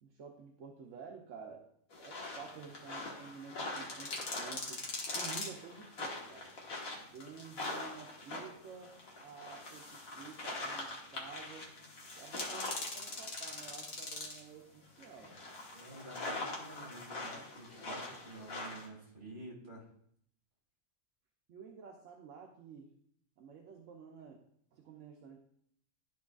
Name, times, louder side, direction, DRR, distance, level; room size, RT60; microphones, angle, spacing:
voice 1, 0.0-1.7 2.0-4.8 5.1-6.5 7.1-11.7 12.1-15.4 21.5-22.9 23.4-24.4 24.7-25.4, right 6 dB, 65° right, 1 dB, 1.0 m, -51 dB
sound 1, 1.9-14.5 15.0-18.9, left 2 dB, 70° left, 1.7 m, -42 dB
voice 2, 15.7-19.9, right 1 dB, 45° right, -3 dB, 2.4 m, -50 dB
12.0 x 4.6 x 2.4 m, 0.68 s
omnidirectional pair, 1.5 m